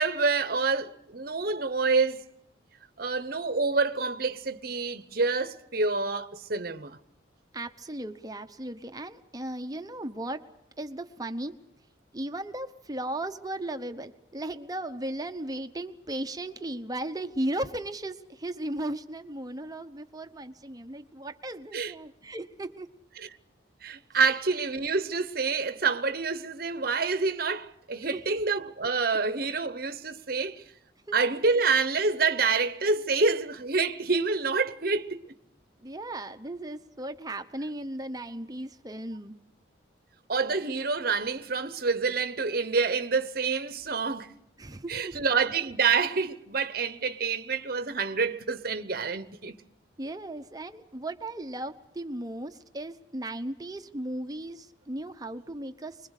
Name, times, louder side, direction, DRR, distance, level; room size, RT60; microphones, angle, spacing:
voice 1, 0.0-2.2 3.0-7.0 21.7-21.9 23.2-23.3 23.8-30.6 31.1-35.2 40.3-44.3 44.9-49.5, right 4 dB, 50° right, 1.0 m, -27 dB
voice 2, 7.5-10.4 10.8-11.5 12.1-22.9 28.3-28.4 31.1-31.2 35.8-39.4 44.6-45.2 50.0-55.9, right 1 dB, 20° right, 0.9 m, -36 dB
25.0 x 21.5 x 6.6 m
head